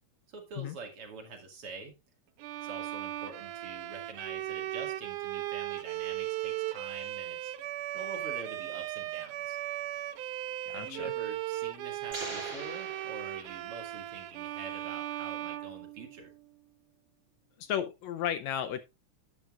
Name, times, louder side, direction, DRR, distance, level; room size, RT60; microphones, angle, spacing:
voice 1, 0.3-1.9 2.6-7.5 7.9-9.6 10.7-16.3, right 3 dB, 50° right, 2 dB, 2.9 m, -46 dB
Bowed string instrument, 2.4-16.5, right 14 dB, 85° right, 2.2 m, -37 dB
voice 2, 10.7-11.1 17.6-18.8, left 9 dB, 75° left, 9 dB, 1.9 m, -34 dB
sound 1, 12.1-14.0, right 2 dB, 30° right, 3.3 m, -42 dB
12.0 x 10.0 x 2.5 m, 0.24 s
omnidirectional pair, 3.5 m